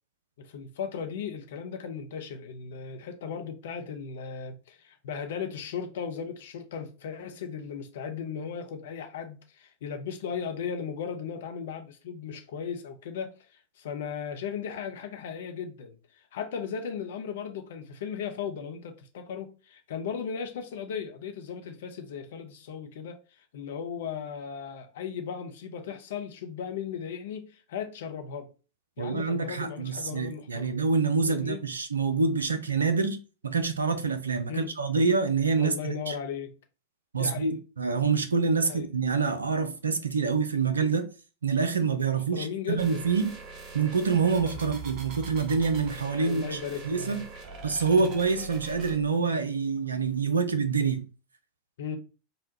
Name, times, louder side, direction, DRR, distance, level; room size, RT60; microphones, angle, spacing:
voice 1, 0.4-23.2 23.5-28.5 29.0-30.7 31.3-31.6 34.5-34.7 35.6-36.5 37.2-37.5 38.6-38.9 42.3-43.0 44.5-44.6 46.1-47.2 48.0-48.1 51.8-52.0, left 7 dB, 55° left, 0.5 m, -36 dB
voice 2, 29.0-33.2 33.4-36.2 37.1-41.1 41.4-43.3 43.7-46.6 46.8-47.3 47.6-51.1, right 5 dB, 75° right, 0.4 m, -26 dB
sound 1, 42.8-49.0, right 5 dB, 40° right, 0.7 m, -42 dB
3.8 x 2.1 x 2.7 m
figure-of-eight pair, 90°, 0 cm